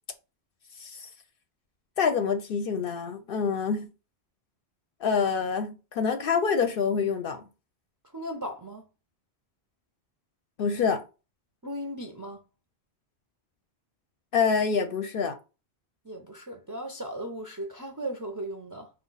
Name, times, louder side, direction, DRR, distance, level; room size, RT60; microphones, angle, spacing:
voice 1, 2.0-3.9 5.0-7.4 10.6-11.0 14.3-15.4, left 6 dB, 65° left, 0.7 m, -26 dB
voice 2, 8.1-8.9 11.6-12.4 16.0-18.9, right 1 dB, 25° right, 0.4 m, -37 dB
4.3 x 2.3 x 3.9 m
omnidirectional pair, 1.1 m